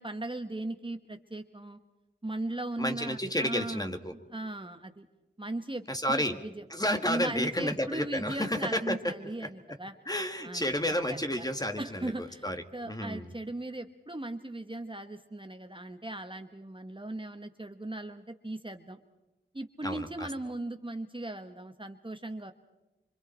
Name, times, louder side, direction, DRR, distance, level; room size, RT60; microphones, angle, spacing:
voice 1, 0.0-1.8 2.2-5.1 5.4-6.6 7.1-9.9 10.4-11.5 11.8-19.0 19.5-22.5, right 2 dB, 25° right, 7 dB, 1.2 m, -38 dB
voice 2, 2.8-4.1 5.9-6.4 6.7-9.1 9.4-9.5 10.1-13.3 19.8-20.3, equal, 20° left, 6 dB, 1.8 m, -31 dB
25.5 x 25.5 x 4.4 m, 1.1 s
wide cardioid pair, 60°, 21 cm